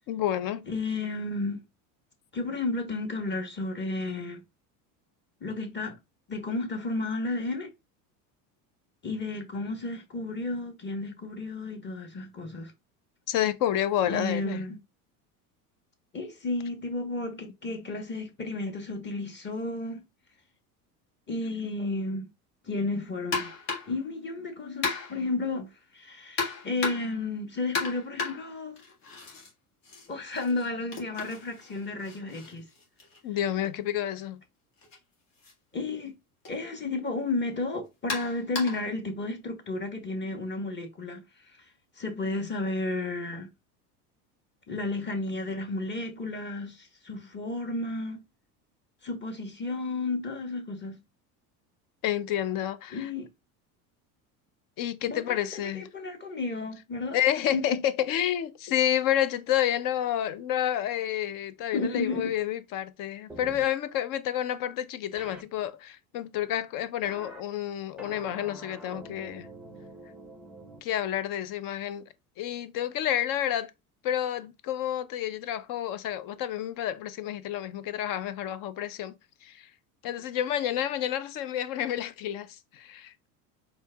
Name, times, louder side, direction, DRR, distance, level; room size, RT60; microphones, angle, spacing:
voice 1, 0.1-0.7 13.3-14.6 33.2-34.4 52.0-53.1 54.8-55.9 57.1-69.5 70.8-72.0 72.4-73.7 74.0-79.1 79.4-79.7 80.0-83.1, left 11 dB, 50° left, 0.6 m, -29 dB
voice 2, 0.7-1.6 2.3-4.4 5.4-6.0 6.3-7.7 9.0-12.7 14.1-14.8 16.1-20.0 21.3-22.3 22.6-23.5 23.9-28.8 30.1-32.7 35.7-36.2 36.5-41.2 42.0-43.5 44.7-48.2 49.0-51.0 52.9-53.3 55.0-57.2 57.5-57.8 61.7-62.3, left 2 dB, 25° left, 1.1 m, -32 dB
sound 1, 23.3-24.0 24.8-25.3 26.4-27.2 27.7-29.5 29.8-33.7 34.8-35.0 35.4-35.5 36.5-36.6 38.1-38.9, left 4 dB, 75° left, 1.8 m, -35 dB
sound 2, 63.3-63.7 65.2-65.4 67.0-67.4 68.0-70.8, right 1 dB, ahead, 0.5 m, -45 dB
4.4 x 2.8 x 2.2 m
hypercardioid pair, 85°, 46 cm